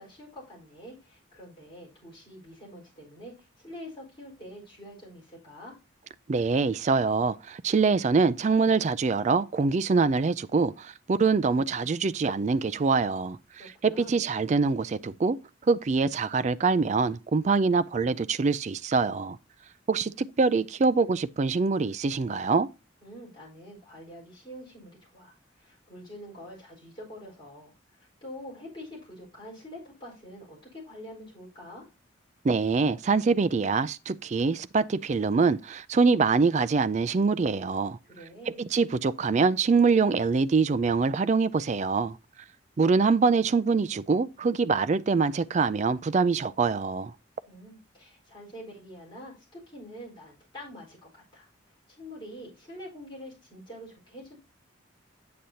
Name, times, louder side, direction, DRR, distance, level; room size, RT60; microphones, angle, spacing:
voice 1, 0.0-5.8 13.6-14.2 23.0-31.9 38.0-38.6 47.5-51.5 51.9-54.4, equal, 25° left, 4.4 m, -46 dB
voice 2, 6.3-13.4 13.8-15.4 15.7-19.4 19.9-22.7 32.4-38.0 38.6-42.2 42.8-47.1, right 4 dB, 35° right, 0.3 m, -24 dB
8.5 x 7.6 x 2.8 m
head